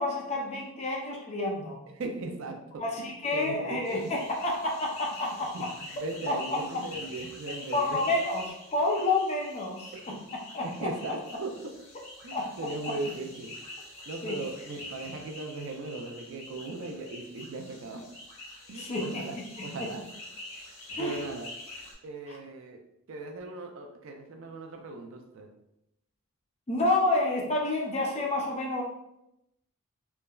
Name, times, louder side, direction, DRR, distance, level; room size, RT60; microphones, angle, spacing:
voice 1, 0.0-1.8 2.8-5.5 6.3-6.4 7.7-8.4 8.7-9.9 10.5-10.9 12.3-12.5 14.2-14.4 18.7-19.2 20.9-21.2 22.3-22.4 26.7-28.8, left 2 dB, 30° left, -1 dB, 0.4 m, -29 dB
voice 2, 1.9-4.1 5.2-5.6 5.9-8.0 9.9-10.2 10.6-11.7 12.2-13.6 14.1-18.0 18.7-20.1 20.5-20.7 21.0-21.5 22.0-22.8 23.1-25.5, right 2 dB, 65° right, 4 dB, 0.4 m, -38 dB
sound 1, 3.8-21.9, left 1 dB, 70° left, 1.0 m, -45 dB
3.3 x 2.0 x 2.3 m, 0.83 s
head